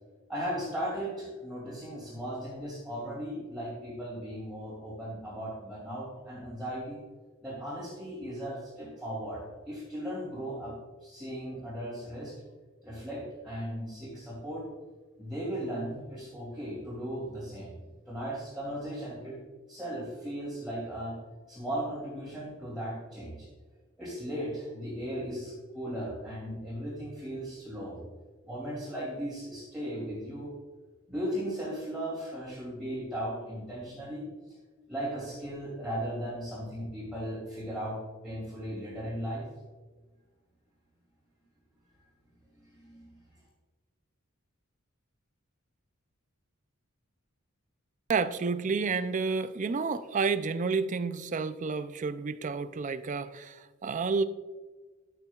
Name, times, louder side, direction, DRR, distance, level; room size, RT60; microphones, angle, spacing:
voice 1, 0.3-7.0 7.4-10.7 11.0-12.4 12.8-14.6 15.2-17.8 18.1-19.4 19.7-21.2 21.5-23.5 24.0-28.0 28.4-30.5 31.1-34.3 34.9-38.0 38.2-39.4 42.7-43.2, equal, 5° right, -8 dB, 2.8 m, -37 dB
voice 2, 48.1-54.2, right 4 dB, 35° right, 12 dB, 0.4 m, -30 dB
11.5 x 9.3 x 2.4 m, 1.4 s
head